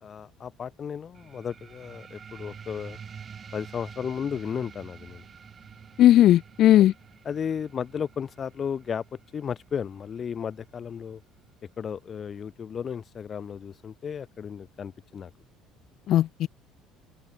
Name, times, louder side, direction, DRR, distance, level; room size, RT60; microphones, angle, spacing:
voice 1, 0.0-3.0 3.5-5.2 6.8-6.9 7.2-11.2 11.8-15.3, left 7 dB, 35° left, 1.3 m, -34 dB
sound 1, 1.1-12.2, right 7 dB, 35° right, 3.4 m, -48 dB
voice 2, 6.0-6.9 16.1-16.5, left 13 dB, 55° left, 0.6 m, -17 dB
cardioid pair, 110°, 0 cm